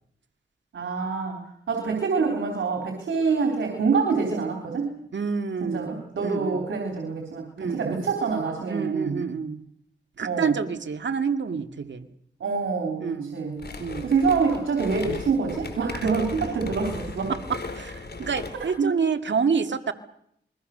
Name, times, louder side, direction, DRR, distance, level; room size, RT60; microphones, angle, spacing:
voice 1, 0.7-1.4 1.7-4.9 5.6-9.2 10.2-10.6 12.4-13.7 14.0-17.3 18.5-19.0, right 5 dB, 90° right, 2 dB, 3.7 m, -26 dB
voice 2, 5.1-6.6 7.6-8.0 8.7-9.6 10.2-12.1 13.0-13.4 13.8-14.1 17.3-17.4 17.7-19.9, right 5 dB, 70° right, 8 dB, 1.9 m, -28 dB
sound 1, 13.6-18.8, left 3 dB, 60° left, 4.6 m, -37 dB
28.5 x 22.0 x 6.7 m, 0.73 s
cardioid pair, 45°, 20 cm